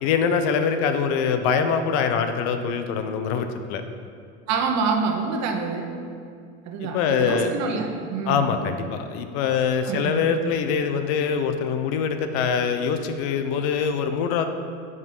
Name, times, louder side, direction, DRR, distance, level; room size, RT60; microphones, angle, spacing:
voice 1, 0.0-3.9 6.8-7.5 8.3-14.4, left 6 dB, 70° left, 7 dB, 0.8 m, -24 dB
voice 2, 4.5-6.0 6.7-8.5 9.9-10.3, right 4 dB, 50° right, 3 dB, 1.1 m, -26 dB
8.1 x 5.4 x 5.4 m, 2.3 s
supercardioid pair, 130°, 35 cm